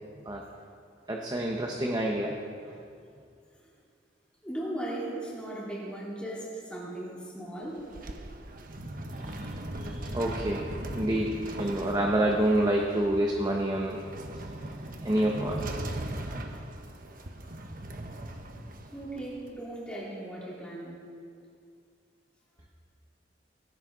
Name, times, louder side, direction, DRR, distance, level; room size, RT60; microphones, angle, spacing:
voice 1, 1.1-2.3 9.2-9.5 9.8-14.0 15.0-15.6, right 1 dB, 20° right, 0 dB, 1.1 m, -28 dB
voice 2, 4.4-7.9 18.9-21.0, right 1 dB, 5° left, -7 dB, 4.2 m, -37 dB
sound 1, 7.6-19.5, right 1 dB, 50° right, 1.2 m, -39 dB
18.0 x 16.5 x 4.0 m, 2.3 s
head